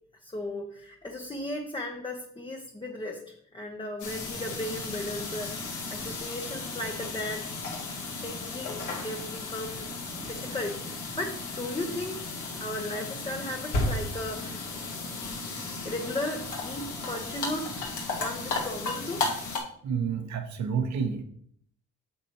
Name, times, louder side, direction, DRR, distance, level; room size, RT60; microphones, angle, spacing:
voice 1, 0.2-3.2 3.5-7.5 8.2-9.9 10.3-12.2 12.6-14.7 15.8-17.8 18.2-19.2, left 1 dB, 15° left, 1 dB, 0.9 m, -36 dB
sound 1, 4.0-19.6, left 3 dB, 80° left, 1.7 m, -34 dB
voice 2, 19.8-21.2, right 6 dB, 65° right, 6 dB, 1.2 m, -29 dB
8.6 x 6.3 x 3.0 m, 0.64 s
cardioid pair, 90°, 30 cm